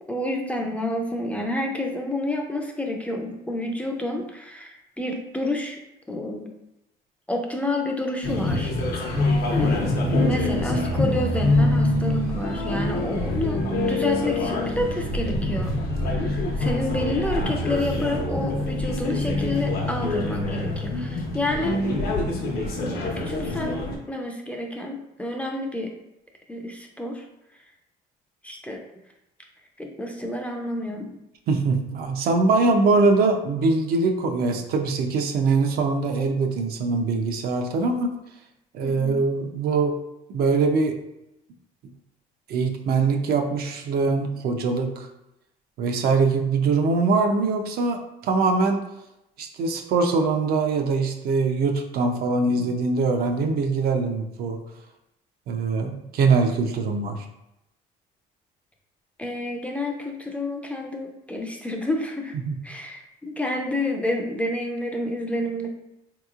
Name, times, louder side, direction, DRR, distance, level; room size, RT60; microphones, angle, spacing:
voice 1, 0.1-5.8 6.1-6.5 7.3-8.7 9.5-15.7 16.1-22.2 22.8-23.0 23.3-25.9 26.5-27.2 28.4-28.8 29.8-31.1 38.8-39.2 59.2-62.3 62.6-65.7, left 1 dB, 10° left, 1 dB, 0.4 m, -29 dB
sound 1, 8.2-24.0, left 2 dB, 65° left, 0.8 m, -25 dB
voice 2, 31.5-38.1 38.7-40.0 40.3-40.9 42.5-45.1 45.8-48.8 49.4-54.6 55.5-57.2 62.4-62.6, right 4 dB, 65° right, 4 dB, 0.5 m, -22 dB
3.6 x 2.9 x 2.4 m, 0.87 s
cardioid pair, 110°, 17 cm